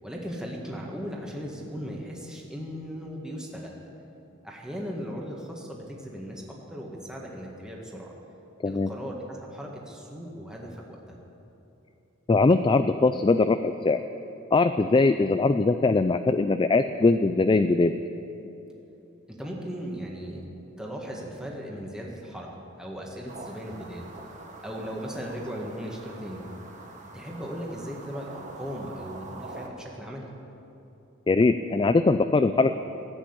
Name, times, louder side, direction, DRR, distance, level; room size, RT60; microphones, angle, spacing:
voice 1, 0.0-3.8 4.4-8.1 8.6-11.2 19.3-20.4 20.8-22.5 22.8-24.0 24.6-26.4 27.1-30.3, equal, 5° right, -2 dB, 1.7 m, -37 dB
voice 2, 12.3-14.0 14.5-17.9 31.3-32.8, left 3 dB, 25° left, 10 dB, 0.3 m, -21 dB
sound 1, 23.3-29.7, right 3 dB, 35° right, 1.5 m, -44 dB
15.0 x 8.9 x 8.8 m, 2.9 s
head